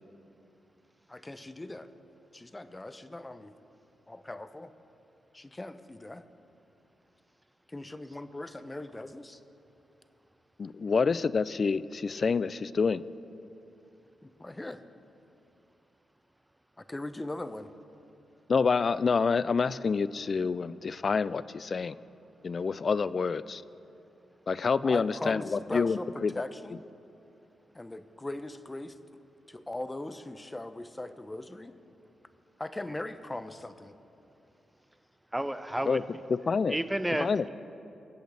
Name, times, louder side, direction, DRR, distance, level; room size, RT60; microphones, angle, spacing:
voice 1, 1.1-1.9 2.3-3.5 4.1-4.7 5.3-6.2 7.7-9.4 14.2-14.8 16.8-17.7 24.8-26.8 27.7-29.0 29.5-31.8 32.6-33.9, left 2 dB, 20° left, 11 dB, 0.7 m, -39 dB
voice 2, 10.6-13.0 18.5-21.9 22.4-23.6 24.5-26.4 35.8-36.0 36.3-36.8 37.2-37.5, left 5 dB, 50° left, 17 dB, 0.3 m, -27 dB
voice 3, 35.3-36.0 36.7-37.5, right 1 dB, 10° right, 11 dB, 0.7 m, -31 dB
23.5 x 7.9 x 3.3 m, 2.8 s
supercardioid pair, 45°, 0 cm